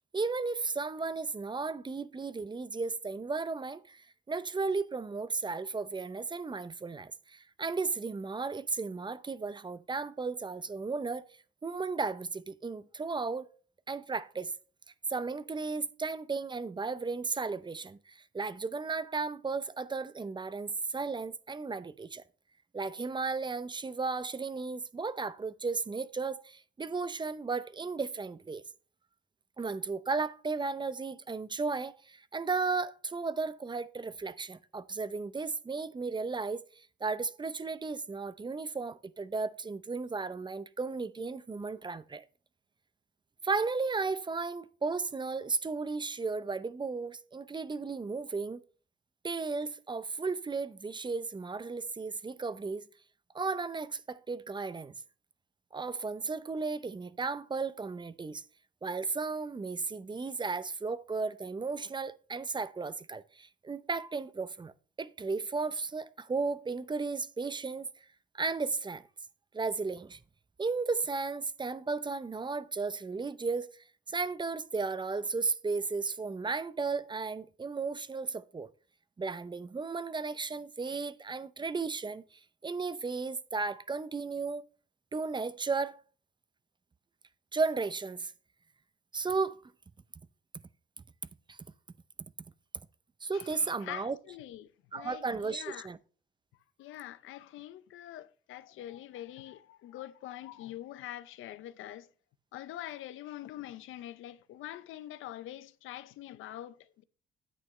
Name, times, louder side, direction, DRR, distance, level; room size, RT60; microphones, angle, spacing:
voice 1, 0.1-11.3 11.6-13.5 13.9-14.5 15.1-22.2 22.7-28.6 29.6-42.2 43.4-48.6 49.2-52.9 53.3-54.9 55.7-58.4 58.8-64.7 65.0-67.9 68.3-69.1 69.5-70.2 70.6-78.7 79.2-84.7 85.1-86.0 87.5-88.3 89.1-89.6 91.5-91.6 93.2-94.2 94.9-96.0, right 4 dB, 25° right, 0.6 m, -34 dB
voice 2, 93.3-95.9 96.8-102.1 102.5-107.0, left 13 dB, 85° left, 0.7 m, -45 dB
10.0 x 8.4 x 3.2 m
cardioid pair, 90°, 20 cm